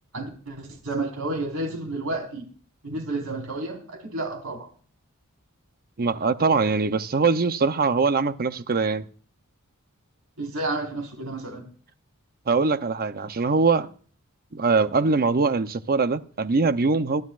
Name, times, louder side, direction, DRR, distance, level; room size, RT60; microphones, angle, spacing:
voice 1, 0.1-2.5 2.8-4.7 10.4-11.6, right 2 dB, 75° right, 4.7 m, -31 dB
voice 2, 6.0-9.1 12.5-13.9 14.5-17.2, right 4 dB, 45° right, 0.8 m, -22 dB
23.0 x 12.0 x 2.5 m
head